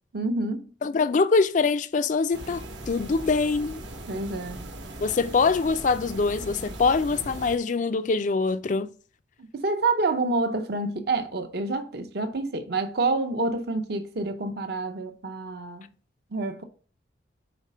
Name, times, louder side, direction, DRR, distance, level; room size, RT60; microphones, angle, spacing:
voice 1, 0.1-0.7 4.1-4.7 9.4-15.9 16.3-16.6, right 3 dB, 55° right, 0.7 m, -28 dB
voice 2, 0.8-3.8 5.0-8.9, left 4 dB, 40° left, 0.3 m, -24 dB
sound 1, 2.3-7.6, right 1 dB, 75° right, 1.0 m, -39 dB
5.0 x 4.1 x 5.4 m
head